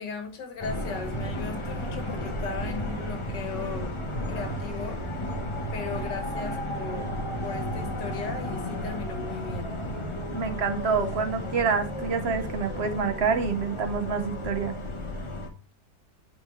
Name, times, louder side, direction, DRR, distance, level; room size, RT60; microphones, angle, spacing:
voice 1, 0.0-3.9 4.3-5.0 5.7-7.1 7.4-9.8, left 5 dB, 85° left, 5 dB, 1.9 m, -37 dB
sound 1, 0.6-15.5, left 1 dB, 30° left, 0.6 m, -33 dB
voice 2, 10.3-14.8, right 5 dB, 50° right, 7 dB, 0.8 m, -27 dB
9.3 x 3.7 x 3.1 m, 0.37 s
omnidirectional pair, 1.8 m